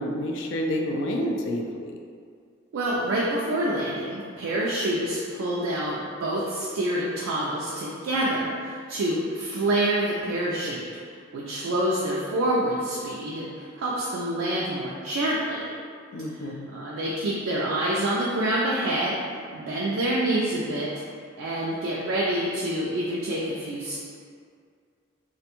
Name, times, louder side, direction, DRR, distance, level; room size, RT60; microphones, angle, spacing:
voice 1, 0.0-1.9 16.1-16.7, equal, 70° left, 2 dB, 0.3 m, -29 dB
voice 2, 2.7-10.9 11.3-15.7 16.4-19.2 19.5-20.9 21.4-24.0, right 1 dB, 80° right, -6 dB, 0.3 m, -27 dB
2.4 x 2.2 x 2.8 m, 2.2 s
head